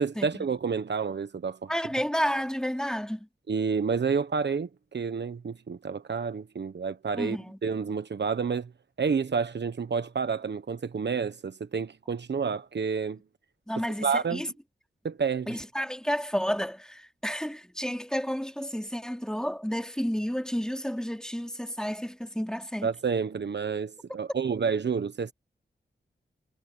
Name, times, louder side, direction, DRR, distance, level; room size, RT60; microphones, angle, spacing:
voice 1, 0.0-1.7 3.5-8.7 9.0-13.2 14.0-14.4 15.0-15.6 22.8-25.3, right 5 dB, 60° right, 1.3 m, -29 dB
voice 2, 1.7-3.3 7.2-7.6 13.7-14.5 15.5-22.9, equal, 5° left, 3.9 m, -31 dB
cardioid pair, 50°, 20 cm